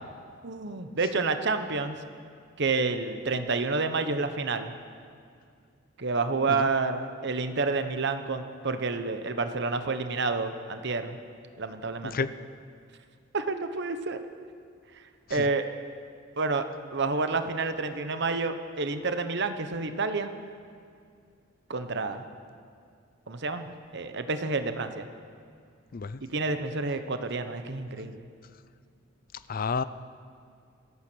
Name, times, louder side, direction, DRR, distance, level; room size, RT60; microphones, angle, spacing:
voice 1, 0.4-2.0 2.6-4.7 6.0-11.2 11.6-12.2 13.3-14.2 15.3-15.7 16.4-16.6 16.9-20.3 21.7-22.2 23.3-23.7 23.9-25.1 26.2-28.2, right 3 dB, 55° right, 9 dB, 1.0 m, -29 dB
voice 2, 29.5-29.8, left 5 dB, 45° left, 15 dB, 0.5 m, -30 dB
26.0 x 8.9 x 6.3 m, 2.2 s
head